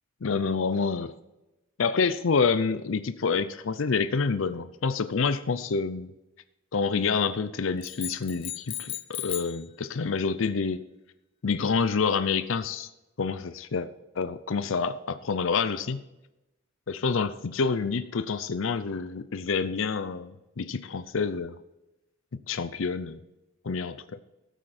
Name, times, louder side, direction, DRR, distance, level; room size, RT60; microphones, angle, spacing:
voice 1, 0.2-1.1 1.8-6.1 6.7-10.8 11.4-12.9 13.2-13.9 14.2-16.0 16.9-21.6 22.5-23.2 23.6-24.0, left 5 dB, 70° left, 12 dB, 0.6 m, -27 dB
sound 1, 7.8-9.6, left 12 dB, 25° left, 0.6 m, -36 dB
14.0 x 8.2 x 4.3 m, 0.97 s
head